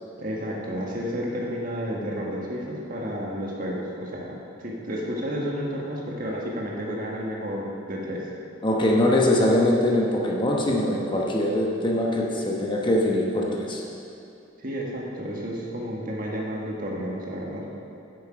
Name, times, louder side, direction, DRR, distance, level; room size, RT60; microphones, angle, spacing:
voice 1, 0.2-8.3 14.6-17.7, equal, 45° right, -3 dB, 1.6 m, -31 dB
voice 2, 8.6-13.8, left 1 dB, 25° left, -2 dB, 1.0 m, -22 dB
10.5 x 8.0 x 5.1 m, 2.7 s
head